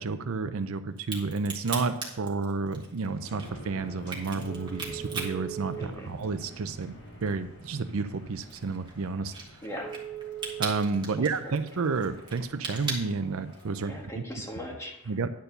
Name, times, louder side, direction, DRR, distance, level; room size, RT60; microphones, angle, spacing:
voice 1, 0.0-6.9 7.2-9.3 10.6-14.2 15.1-15.3, right 4 dB, 65° right, 9 dB, 0.5 m, -31 dB
Crack, 1.0-6.5 6.8-13.8, right 4 dB, 20° right, 1.6 m, -39 dB
sound 1, 3.2-14.1, right 5 dB, 85° left, 3.7 m, -44 dB
voice 2, 5.8-6.1 9.6-10.0 11.2-11.6 13.8-15.0, equal, 15° left, 0 dB, 1.5 m, -39 dB
10.0 x 4.6 x 6.7 m, 0.83 s
head